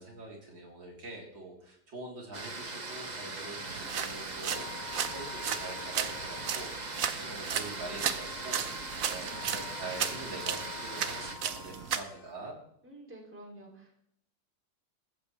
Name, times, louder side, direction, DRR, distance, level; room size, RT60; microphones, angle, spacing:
voice 1, 0.0-12.5, right 2 dB, 75° right, -2 dB, 4.4 m, -44 dB
sound 1, 2.3-11.3, right 3 dB, 25° right, 1.1 m, -40 dB
sound 2, 3.7-12.0, right 8 dB, 55° right, 1.0 m, -36 dB
sound 3, 4.5-12.5, left 11 dB, 55° left, 1.5 m, -48 dB
voice 2, 12.8-13.9, right 1 dB, 5° right, -1 dB, 2.8 m, -49 dB
15.0 x 14.5 x 3.3 m, 0.69 s
omnidirectional pair, 2.1 m